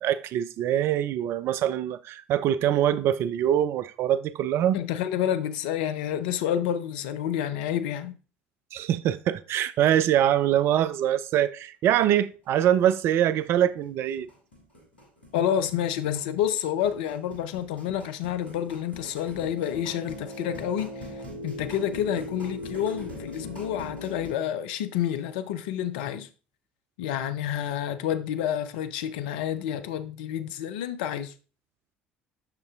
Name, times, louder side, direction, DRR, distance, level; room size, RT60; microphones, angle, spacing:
voice 1, 0.0-4.8 8.7-14.3, right 11 dB, 50° right, 0.4 m, -24 dB
voice 2, 4.7-8.2 15.3-21.1 21.4-26.3 27.0-31.3, left 10 dB, 65° left, 0.4 m, -29 dB
sound 1, 12.3-12.4 12.7-12.8 13.1-24.3, left 1 dB, 85° left, 1.3 m, -40 dB
6.7 x 6.5 x 2.3 m
figure-of-eight pair, 55°, 5 cm